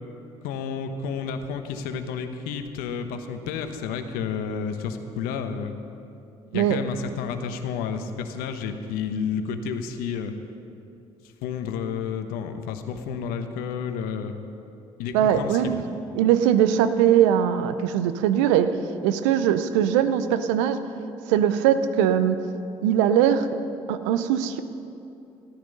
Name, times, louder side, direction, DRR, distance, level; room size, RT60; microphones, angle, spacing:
voice 1, 0.4-5.7 6.5-10.3 11.4-14.3 15.0-15.8, left 6 dB, 70° left, 8 dB, 1.0 m, -31 dB
voice 2, 15.1-15.8 16.2-18.7 19.0-20.8 21.3-22.4 22.8-23.5 23.9-24.6, right 10 dB, 80° right, 11 dB, 0.6 m, -21 dB
13.5 x 11.5 x 5.4 m, 2.7 s
hypercardioid pair, 50°, 16 cm